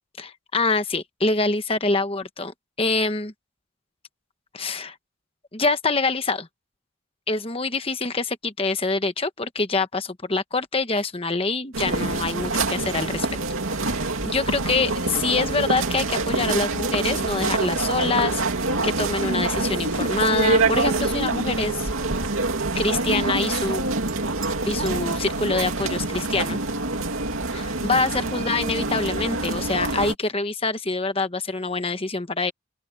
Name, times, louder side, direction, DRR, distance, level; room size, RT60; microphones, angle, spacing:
voice 1, 0.2-3.3 4.5-5.0 5.5-6.5 7.3-13.3 13.7-18.4 18.8-21.9 22.7-23.8 24.6-26.6 27.5-32.5, left 3 dB, 25° left, 1.2 m, -25 dB
sound 1, 11.7-30.1, right 3 dB, 75° right, 2.6 m, -25 dB
open air
head